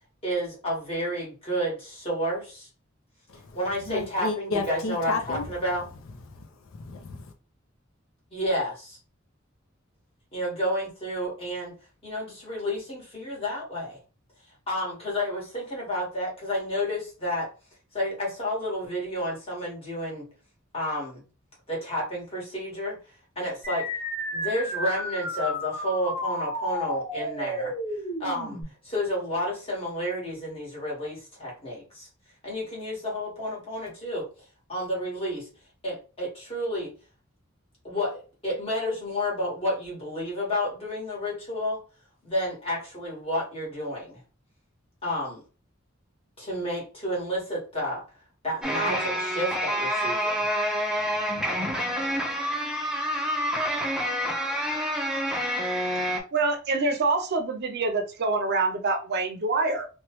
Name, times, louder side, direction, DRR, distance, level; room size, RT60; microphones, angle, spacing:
voice 1, 0.2-2.7 3.5-5.8 8.3-9.0 10.3-11.7 12.0-14.0 14.7-17.5 17.9-20.2 20.7-21.2 21.7-23.0 23.3-23.9 24.3-27.7 28.2-28.6 28.8-32.1 32.4-34.3 34.7-35.5 35.8-36.9 37.8-41.8 42.2-44.2 45.0-45.4 46.4-48.0 48.4-50.5, equal, 30° left, 1.6 m, -30 dB
voice 2, 3.9-5.5 6.3-7.3, left 3 dB, 80° left, 0.5 m, -32 dB
sound 1, 23.6-28.6, equal, 15° left, 1.6 m, -32 dB
sound 2, 48.6-56.2, equal, 5° right, 0.5 m, -27 dB
voice 3, 56.3-59.9, right 3 dB, 55° right, 0.5 m, -26 dB
3.0 x 2.2 x 2.9 m
head